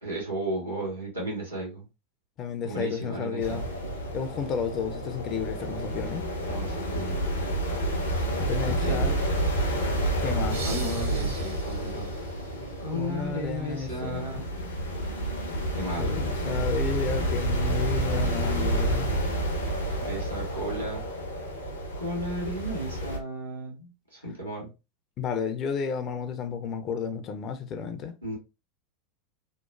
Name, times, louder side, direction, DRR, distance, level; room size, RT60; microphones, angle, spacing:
voice 1, 0.0-1.9 2.6-3.6 6.4-7.3 8.5-9.2 10.6-12.2 12.8-14.5 15.4-16.2 20.0-21.0 22.0-24.7 28.2-28.4, right 1 dB, 85° right, 1.3 m, -34 dB
voice 2, 2.4-3.6 4.1-6.3 8.4-9.2 10.2-11.3 12.9-14.4 16.0-19.2 25.2-28.1, left 6 dB, 35° left, 0.4 m, -32 dB
sound 1, 3.4-23.2, right 1 dB, 80° left, 0.6 m, -29 dB
sound 2, 10.5-13.3, right 4 dB, 70° right, 1.5 m, -43 dB
3.0 x 2.0 x 2.4 m
figure-of-eight pair, 85°, 0 cm